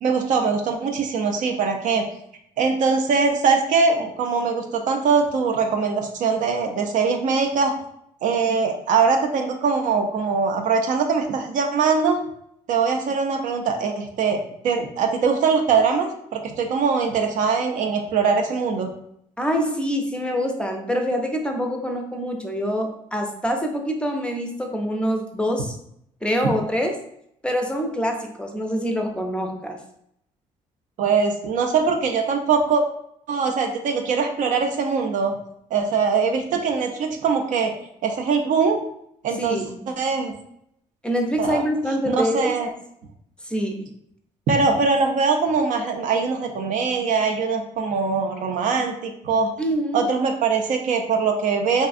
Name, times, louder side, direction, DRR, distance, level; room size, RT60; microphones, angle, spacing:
voice 1, 0.0-2.0 2.6-7.7 8.2-12.2 12.7-18.9 31.0-32.8 33.3-35.3 35.7-37.7 38.0-38.8 39.2-39.6 40.0-40.3 41.4-41.6 42.1-42.7 44.5-49.5 49.9-51.9, right 5 dB, 60° right, 4 dB, 0.4 m, -22 dB
voice 2, 19.4-25.8 26.2-27.0 27.4-29.8 39.4-39.9 41.0-42.5 43.4-43.9 49.6-50.1, equal, 5° left, 2 dB, 0.5 m, -25 dB
2.6 x 2.3 x 2.4 m, 0.73 s
supercardioid pair, 65°, 14 cm